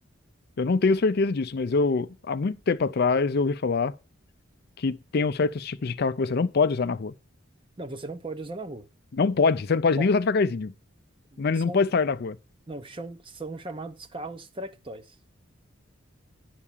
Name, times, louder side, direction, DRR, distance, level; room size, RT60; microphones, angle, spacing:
voice 1, 0.6-3.9 4.8-7.1 9.1-10.7 11.4-12.4, left 4 dB, 50° left, 0.5 m, -24 dB
voice 2, 7.8-8.9 10.0-10.1 11.3-11.8 12.7-15.1, right 2 dB, 25° right, 0.7 m, -37 dB
11.0 x 4.7 x 7.3 m
head